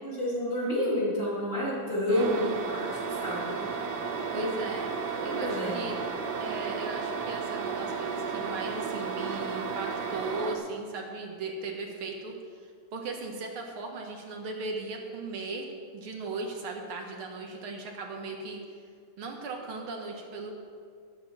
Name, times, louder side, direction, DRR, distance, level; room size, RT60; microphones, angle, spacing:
voice 1, 0.0-2.8 3.2-3.5 4.3-4.4 5.2-5.8, left 1 dB, 25° left, -8 dB, 3.1 m, -29 dB
sound 1, 2.1-10.6, right 5 dB, 55° right, 1.5 m, -33 dB
voice 2, 2.1-2.6 4.3-4.9 5.2-6.0 6.4-12.3 12.9-15.7 15.9-18.6 19.2-20.5, right 3 dB, 75° right, 1 dB, 2.3 m, -37 dB
12.5 x 7.5 x 7.3 m, 2.1 s
omnidirectional pair, 2.4 m